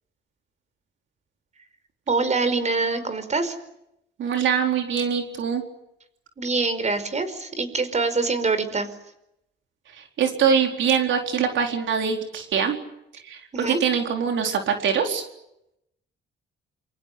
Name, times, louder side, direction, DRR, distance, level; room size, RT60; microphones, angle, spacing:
voice 1, 2.1-3.5 6.4-8.9 13.5-13.8, right 3 dB, 35° right, 11 dB, 5.1 m, -24 dB
voice 2, 4.2-5.6 10.0-12.8 13.2-15.2, right 7 dB, 70° right, 4 dB, 4.3 m, -23 dB
27.5 x 24.5 x 8.4 m, 0.82 s
cardioid pair, 90°, 20 cm